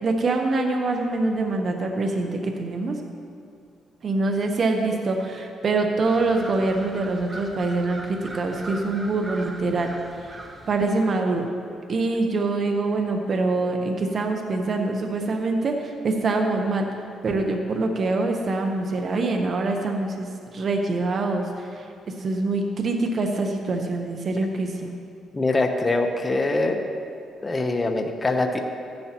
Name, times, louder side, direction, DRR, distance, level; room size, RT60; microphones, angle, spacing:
voice 1, 0.0-3.0 4.0-9.9 10.2-10.4 10.7-11.5 11.9-16.9 17.2-24.9, right 3 dB, 50° right, 3 dB, 1.0 m, -25 dB
sound 1, 6.0-11.0, right 2 dB, 25° right, 1.1 m, -40 dB
voice 2, 25.3-26.8 27.4-28.6, left 2 dB, 25° left, 4 dB, 0.9 m, -23 dB
14.5 x 10.5 x 3.0 m, 2.4 s
cardioid pair, 90°, 0 cm